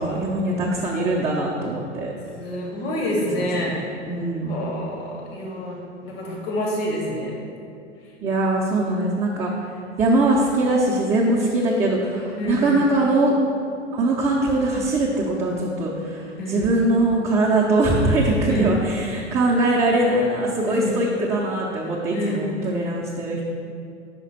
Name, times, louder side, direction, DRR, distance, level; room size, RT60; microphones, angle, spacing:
voice 1, 0.0-2.1 3.2-3.7 4.1-4.5 8.2-9.7 10.0-13.4 13.9-23.4, right 2 dB, 15° right, -5 dB, 0.6 m, -22 dB
voice 2, 2.3-3.8 4.5-7.4 12.4-12.8 16.4-16.6 18.4-18.7 20.7-21.0 22.1-22.8, left 1 dB, 55° left, -1 dB, 1.4 m, -28 dB
5.5 x 5.1 x 4.6 m, 2.5 s
figure-of-eight pair, 90°, 36 cm